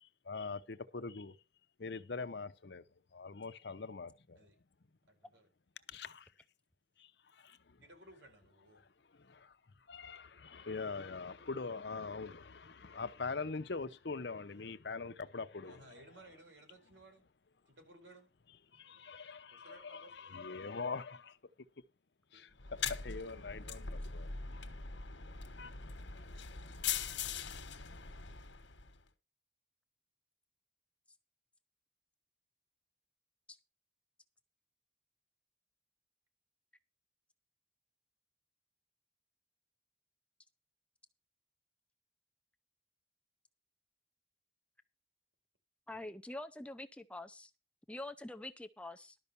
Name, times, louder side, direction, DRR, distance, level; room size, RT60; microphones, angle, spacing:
voice 1, 0.2-1.4 1.8-2.8 3.1-4.4 5.9-6.3 7.0-7.8 9.1-9.6 9.9-15.9 18.7-21.4 22.3-24.6 25.6-25.7, left 4 dB, 70° left, 0.8 m, -43 dB
voice 2, 5.1-5.5 7.8-8.8 15.6-17.3 17.7-18.3 19.5-20.1 22.3-22.4, right 1 dB, 85° right, 4.8 m, -58 dB
sound 1, 22.6-29.0, left 7 dB, 85° left, 1.3 m, -41 dB
voice 3, 45.9-47.5 47.9-49.2, left 2 dB, 5° left, 0.5 m, -45 dB
12.0 x 5.5 x 6.9 m
head